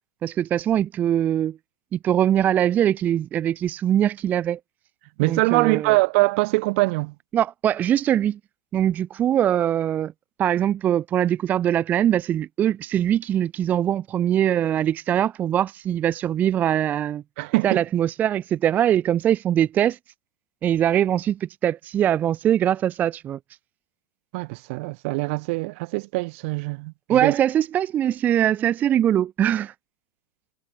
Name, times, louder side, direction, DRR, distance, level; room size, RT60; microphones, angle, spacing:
voice 1, 0.2-1.6 1.9-4.6 5.2-6.0 7.3-8.4 8.7-10.1 10.4-17.2 17.6-20.0 20.6-23.4 27.1-29.7, right 10 dB, 20° right, 0.4 m, -22 dB
voice 2, 5.2-7.1 17.4-17.8 24.3-27.3, right 26 dB, 50° right, 1.9 m, -23 dB
supercardioid pair, 175°, 9 cm